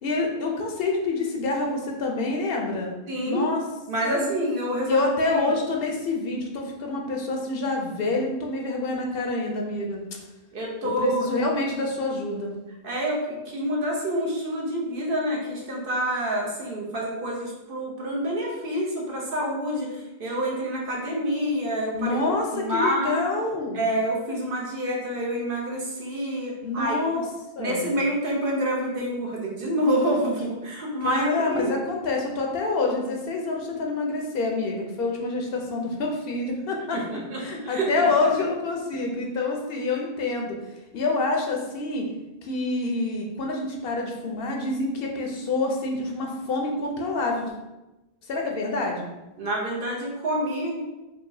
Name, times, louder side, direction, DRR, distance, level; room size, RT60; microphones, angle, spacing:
voice 1, 0.0-2.9 3.3-3.6 4.0-4.2 4.9-10.0 10.8-12.5 21.9-23.8 26.6-27.2 27.5-27.9 31.0-37.0 37.4-40.6 40.9-42.1 42.4-47.5 48.2-49.1, left 3 dB, 70° left, 1 dB, 0.8 m, -27 dB
voice 2, 3.1-3.4 3.9-5.5 10.5-11.3 12.8-22.2 22.5-23.2 23.7-27.2 27.6-31.7 36.9-38.1 49.4-50.8, right 1 dB, 60° right, -3 dB, 0.9 m, -27 dB
4.6 x 2.4 x 2.6 m, 1.0 s
omnidirectional pair, 1.1 m